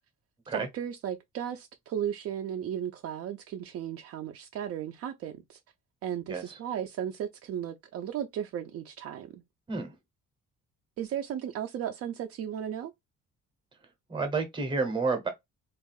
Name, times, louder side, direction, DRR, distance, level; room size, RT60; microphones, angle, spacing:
voice 1, 0.5-5.6 6.0-9.4 11.0-12.9, right 9 dB, 55° right, 0.4 m, -35 dB
voice 2, 14.1-15.3, right 4 dB, 15° right, 0.8 m, -30 dB
3.5 x 2.4 x 2.3 m
cardioid pair, 175°, 29 cm